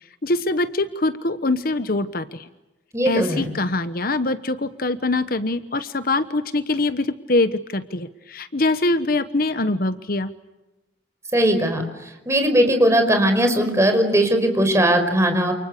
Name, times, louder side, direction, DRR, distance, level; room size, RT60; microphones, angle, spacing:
voice 1, 0.2-2.5 3.0-10.3, left 2 dB, 55° left, 12 dB, 1.2 m, -23 dB
voice 2, 2.9-3.5 11.3-15.5, right 1 dB, 15° right, 5 dB, 5.1 m, -19 dB
29.0 x 29.0 x 6.8 m, 1.0 s
head